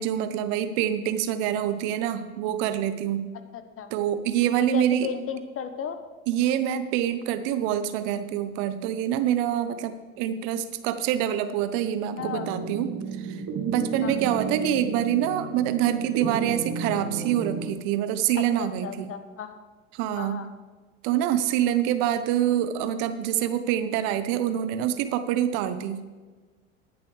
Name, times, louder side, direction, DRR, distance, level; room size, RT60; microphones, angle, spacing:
voice 1, 0.0-3.3 3.9-5.1 6.3-19.1 19.9-20.4 21.0-26.0, right 10 dB, 55° right, 11 dB, 1.1 m, -26 dB
voice 2, 3.5-3.9 4.7-6.0 12.2-12.5 14.0-14.1 18.3-18.4 18.8-19.6 20.2-20.5, left 7 dB, 35° left, 9 dB, 1.3 m, -34 dB
sound 1, 12.2-17.7, right 5 dB, 40° right, 1.6 m, -32 dB
18.0 x 10.5 x 3.3 m, 1.3 s
hypercardioid pair, 80°, 39 cm